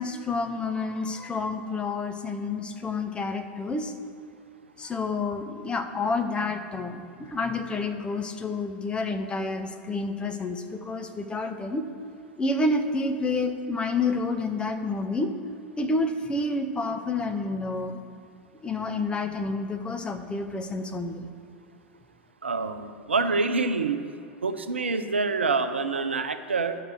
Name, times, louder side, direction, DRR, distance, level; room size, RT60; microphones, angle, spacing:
voice 1, 0.0-3.9 4.8-11.9 12.4-15.3 15.8-18.0 18.6-21.3, left 3 dB, 15° left, 7 dB, 0.7 m, -29 dB
voice 2, 22.4-24.0 24.4-26.8, right 4 dB, 80° right, 9 dB, 0.5 m, -26 dB
10.5 x 6.6 x 4.5 m, 2.4 s
figure-of-eight pair, 85°, 6 cm